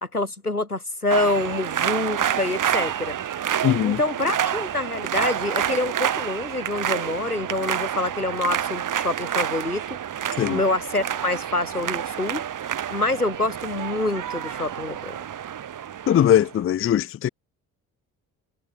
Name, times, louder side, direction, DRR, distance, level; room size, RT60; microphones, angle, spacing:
voice 1, 0.0-3.2 3.8-10.0 10.5-15.2, left 2 dB, 90° left, 3.5 m, -26 dB
sound 1, 1.1-16.6, right 9 dB, 45° right, 4.0 m, -28 dB
voice 2, 3.6-4.0 10.4-10.6 16.1-17.3, left 10 dB, 30° left, 0.7 m, -20 dB
figure-of-eight pair, 45°, 44 cm